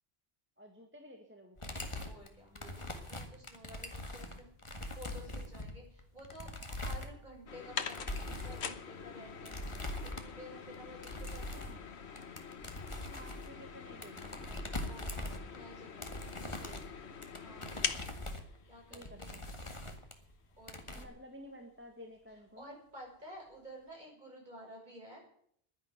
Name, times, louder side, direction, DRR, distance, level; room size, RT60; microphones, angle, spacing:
voice 1, 0.6-1.8 11.5-11.8 13.0-14.6 16.4-16.8 18.9-19.4 20.9-22.8, equal, 10° right, 3 dB, 1.7 m, -53 dB
sound 1, 1.6-7.5 7.9-8.6 9.4-10.5 10.7-11.9 12.2-15.7 16.0-20.3 20.6-21.0, left 1 dB, 25° left, 1.8 m, -42 dB
voice 2, 2.0-4.5 4.9-11.6 14.9-16.3 17.4-17.9 18.7-19.3 20.6-21.1 22.6-25.2, equal, 45° right, -2 dB, 6.8 m, -52 dB
sound 2, 7.5-19.6 20.0-20.1 20.9-21.0 21.3-21.4 21.9-22.0 22.3-22.5, left 6 dB, 80° left, 1.4 m, -44 dB
11.0 x 10.5 x 9.3 m, 0.65 s
omnidirectional pair, 1.1 m